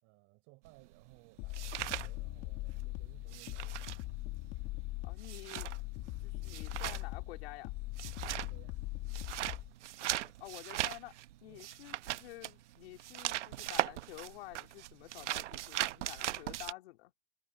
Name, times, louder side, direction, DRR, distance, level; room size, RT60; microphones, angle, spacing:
voice 1, 0.0-3.9 8.1-8.8 11.5-11.7, right 24 dB, 40° right, 4.3 m, -61 dB
sound 1, 0.6-2.8 3.1-16.7, right 14 dB, 90° right, 1.1 m, -39 dB
sound 2, 1.4-9.7, left 21 dB, 40° left, 1.9 m, -41 dB
voice 2, 5.0-5.7 6.2-7.7 10.0-11.1 11.4-17.1, left 19 dB, 60° left, 3.1 m, -50 dB
supercardioid pair, 155°, 34 cm